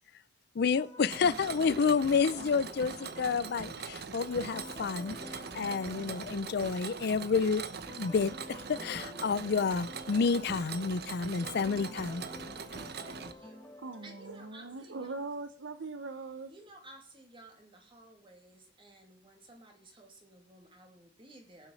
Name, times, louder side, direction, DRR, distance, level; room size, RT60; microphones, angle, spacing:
voice 1, 0.5-7.6 7.9-12.2, left 5 dB, 60° left, 0.5 m, -30 dB
sound 1, 0.8-15.0, left 2 dB, 10° left, 2.1 m, -50 dB
Mechanisms, 1.1-13.3, right 5 dB, 60° right, 0.9 m, -42 dB
voice 2, 12.2-13.6 14.0-15.2 16.5-21.7, right 1 dB, 30° right, 2.4 m, -55 dB
voice 3, 13.6-16.5, right 3 dB, 90° right, 0.9 m, -41 dB
17.0 x 6.5 x 6.3 m
head